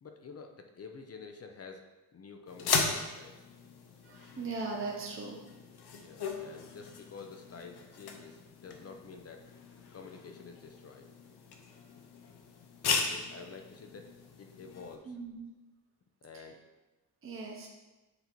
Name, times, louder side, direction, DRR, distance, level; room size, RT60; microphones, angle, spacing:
voice 1, 0.0-1.9 2.1-3.5 5.9-9.4 9.9-11.1 12.9-14.1 14.4-15.1 16.2-16.6, left 4 dB, 40° left, 4 dB, 0.5 m, -49 dB
sound 1, 2.5-15.0, left 5 dB, 90° left, 0.8 m, -38 dB
voice 2, 4.0-5.4 15.0-15.5 16.3-16.5 17.2-17.7, right 3 dB, 35° right, -2 dB, 0.8 m, -39 dB
7.9 x 2.7 x 4.4 m, 1.1 s
wide cardioid pair, 155°, 38 cm